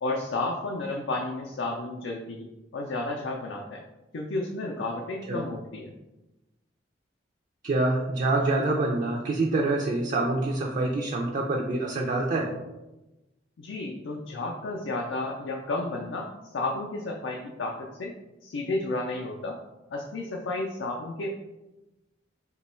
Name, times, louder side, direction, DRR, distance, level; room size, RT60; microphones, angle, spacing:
voice 1, 0.0-2.5 2.7-3.8 4.1-5.9 13.6-18.1 18.4-19.6 19.9-21.3, left 2 dB, 85° left, 0 dB, 0.4 m, -32 dB
voice 2, 7.6-12.5, right 2 dB, 45° right, -1 dB, 0.4 m, -26 dB
2.9 x 2.2 x 4.2 m, 1.0 s
head